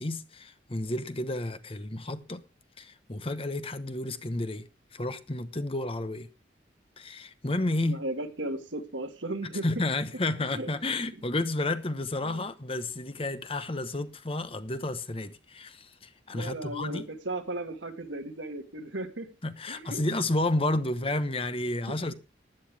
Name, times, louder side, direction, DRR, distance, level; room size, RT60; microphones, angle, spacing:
voice 1, 0.0-2.4 2.8-6.3 7.0-8.0 9.6-17.1 19.4-22.1, left 2 dB, 30° left, 1.0 m, -31 dB
voice 2, 7.8-9.7 10.4-10.7 12.2-12.5 16.3-19.3 19.7-20.0 21.9-22.0, right 1 dB, 80° right, 2.0 m, -36 dB
15.5 x 11.0 x 3.5 m
head